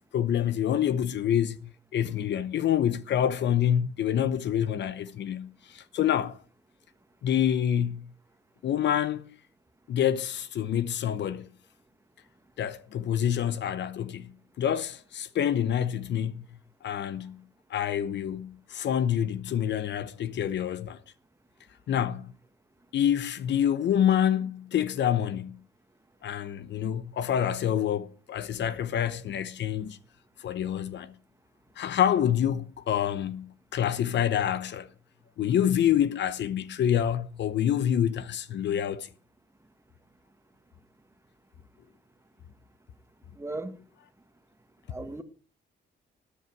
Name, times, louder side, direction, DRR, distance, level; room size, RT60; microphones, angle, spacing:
voice 1, 0.1-6.4 7.2-8.1 8.6-9.3 9.9-11.5 12.6-14.3 14.6-16.4 16.8-17.4 17.7-21.0 21.9-22.3 22.9-25.6 26.2-30.0 30.4-31.1 31.8-34.9 35.4-39.1, left 10 dB, 65° left, 0.8 m, -27 dB
voice 2, 43.4-43.8 44.9-45.2, right 2 dB, 15° right, 1.5 m, -36 dB
13.0 x 10.0 x 4.7 m
cardioid pair, 90°, 20 cm